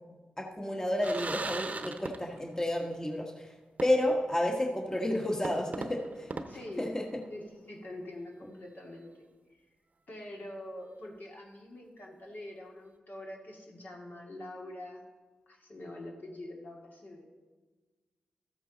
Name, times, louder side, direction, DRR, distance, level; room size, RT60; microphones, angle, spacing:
voice 1, 0.4-3.5 3.8-6.3 6.8-7.1, left 1 dB, 15° left, 1 dB, 1.5 m, -31 dB
sound 1, 1.0-2.6 2.9-3.0 3.8-4.3 4.7-4.8 5.4-7.4, right 3 dB, 45° right, 0.8 m, -39 dB
voice 2, 6.5-6.9 7.3-9.3 10.1-15.1 15.5-17.2, left 1 dB, 60° left, -1 dB, 2.2 m, -45 dB
13.5 x 8.2 x 4.1 m, 1.3 s
supercardioid pair, 40°, 3 cm